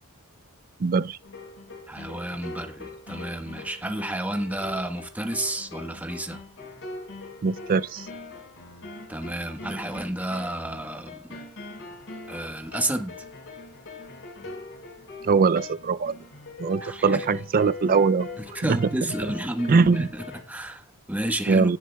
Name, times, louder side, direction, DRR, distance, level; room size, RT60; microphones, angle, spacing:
voice 1, 0.8-1.2 7.4-8.1 15.2-16.1 16.6-18.3 18.6-18.9 19.7-20.1 21.5-21.8, right 5 dB, 40° right, 0.4 m, -21 dB
sound 1, 1.2-20.4, left 3 dB, 60° left, 5.2 m, -42 dB
voice 2, 1.9-6.4 9.1-11.1 12.3-13.1 16.8-17.2 18.5-21.7, right 1 dB, 5° right, 1.3 m, -31 dB
18.5 x 7.5 x 2.3 m
head